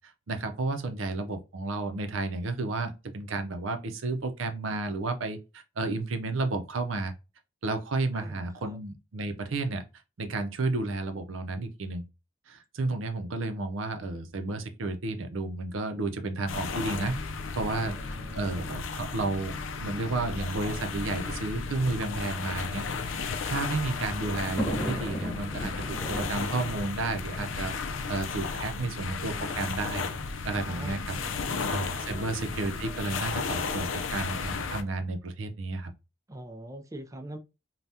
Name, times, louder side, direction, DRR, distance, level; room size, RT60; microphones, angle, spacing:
voice 1, 0.3-7.1 7.6-9.8 10.2-12.0 12.5-17.2 17.6-18.0 18.3-27.7 28.1-30.1 30.4-31.2 31.7-35.9, right 2 dB, 85° right, 0.6 m, -32 dB
voice 2, 8.1-8.8 17.8-18.8 30.6-32.3 36.3-37.4, right 1 dB, 15° right, 0.4 m, -44 dB
sound 1, 16.5-34.8, left 4 dB, 80° left, 0.4 m, -34 dB
Thunder, 23.5-28.4 29.3-29.4 29.6-29.7 30.8-31.1, equal, 10° left, 1.0 m, -37 dB
3.4 x 2.3 x 2.7 m
head